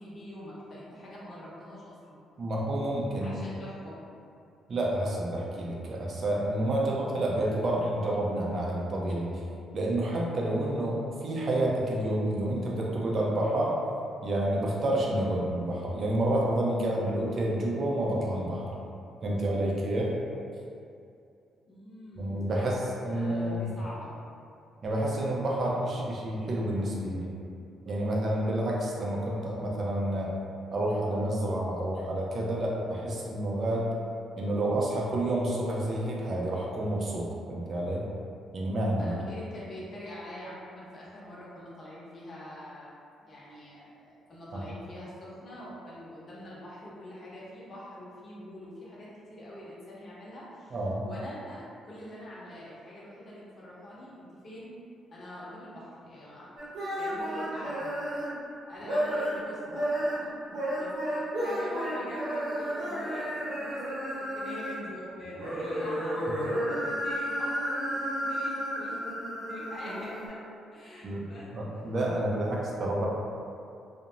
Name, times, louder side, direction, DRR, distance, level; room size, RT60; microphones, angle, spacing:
voice 1, 0.0-2.2 3.2-4.0 21.6-22.6 23.0-24.1 24.5-25.0 25.3-26.3 39.0-42.9 43.2-50.7 51.0-54.8 55.1-56.5 57.0-57.9 58.6-60.2 60.6-67.6 67.9-69.0 69.3-70.4 70.7-71.5, left 1 dB, 45° left, -7 dB, 0.8 m, -45 dB
voice 2, 2.4-3.4 4.7-9.4 9.7-13.8 14.2-18.8 19.2-20.1 22.2-23.7 24.8-27.3 27.9-30.3 30.7-33.9 34.4-38.1 38.5-39.2 44.5-44.6 50.7-51.1 71.0-71.3 71.5-73.1, right 1 dB, 50° right, -3 dB, 0.5 m, -29 dB
sound 1, 56.6-58.4 58.8-59.4 59.7-64.9 65.2-70.3, equal, 70° right, 1.0 m, -32 dB
2.5 x 2.1 x 2.9 m, 2.5 s
cardioid pair, 90°, 0 cm